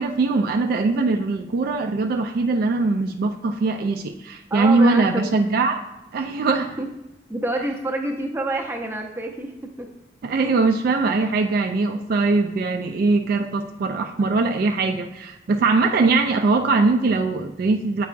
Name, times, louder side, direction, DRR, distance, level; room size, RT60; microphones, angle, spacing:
voice 1, 0.0-5.8 6.1-6.8 10.2-18.1, right 3 dB, 55° right, 5 dB, 0.3 m, -21 dB
voice 2, 4.5-5.5 6.8-6.9 7.3-9.5 9.8-9.9, right 1 dB, 15° right, 1 dB, 0.6 m, -27 dB
8.1 x 4.7 x 2.5 m, 0.93 s
head